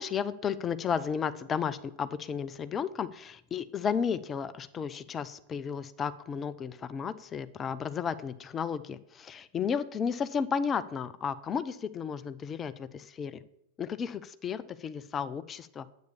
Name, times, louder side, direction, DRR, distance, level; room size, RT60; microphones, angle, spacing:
voice 1, 0.0-13.4 13.8-15.9, left 7 dB, 25° left, 14 dB, 0.7 m, -33 dB
9.5 x 8.3 x 7.0 m, 0.75 s
figure-of-eight pair, 90°, 0 cm